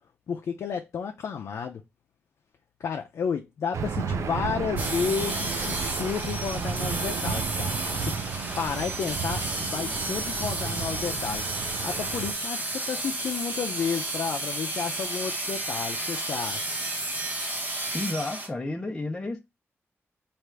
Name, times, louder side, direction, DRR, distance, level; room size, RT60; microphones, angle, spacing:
voice 1, 0.3-1.8 2.8-8.1 8.6-16.7, left 6 dB, 85° left, 0.4 m, -32 dB
Aircraft / Engine, 3.7-12.3, right 6 dB, 85° right, 0.5 m, -33 dB
sound 1, 4.8-18.5, right 2 dB, 30° right, 1.0 m, -32 dB
voice 2, 17.9-19.4, left 2 dB, 15° left, 0.7 m, -31 dB
3.3 x 2.4 x 4.4 m
wide cardioid pair, 155°, 5 cm